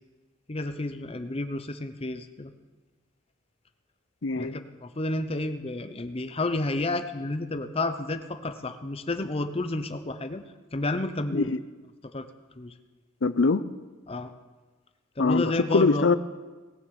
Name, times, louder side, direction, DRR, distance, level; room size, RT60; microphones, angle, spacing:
voice 1, 0.5-2.5 4.4-10.4 10.7-11.5 12.1-12.3 12.6-12.7 14.1-14.3 15.2-16.1, left 2 dB, 30° left, 9 dB, 0.7 m, -30 dB
voice 2, 4.2-4.6 11.3-11.6 13.2-13.6 15.2-16.2, left 3 dB, 65° left, 14 dB, 0.6 m, -23 dB
18.5 x 7.1 x 7.1 m, 1.3 s
head